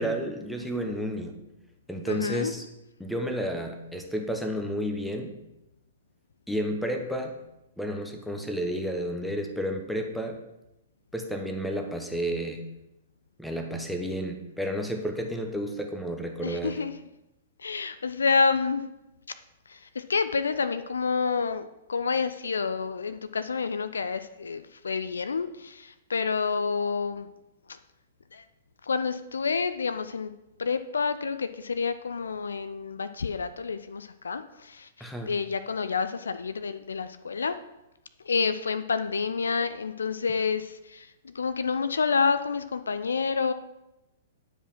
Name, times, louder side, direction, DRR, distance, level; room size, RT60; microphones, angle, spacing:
voice 1, 0.0-1.4 1.9-2.6 3.0-5.3 6.5-7.4 7.8-10.4 11.1-12.6 13.4-16.8 35.0-35.3, equal, ahead, 3 dB, 1.1 m, -31 dB
voice 2, 2.1-2.5 16.4-16.9 17.6-18.8 19.7-27.3 27.7-27.8 28.3-28.4 28.8-30.3 30.6-37.6 38.2-43.5, left 5 dB, 70° left, 11 dB, 0.4 m, -29 dB
9.8 x 5.2 x 6.0 m, 0.92 s
figure-of-eight pair, 110°, 0 cm